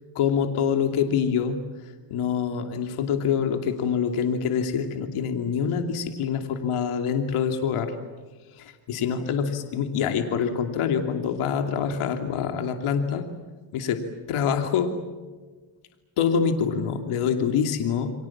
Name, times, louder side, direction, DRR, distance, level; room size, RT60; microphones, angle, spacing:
voice 1, 0.1-1.6 2.1-7.9 8.6-13.2 13.7-14.0 14.3-14.9 16.2-18.1, left 7 dB, 80° left, 5 dB, 2.9 m, -25 dB
29.0 x 24.0 x 7.4 m, 1.3 s
cardioid pair, 105°, 49 cm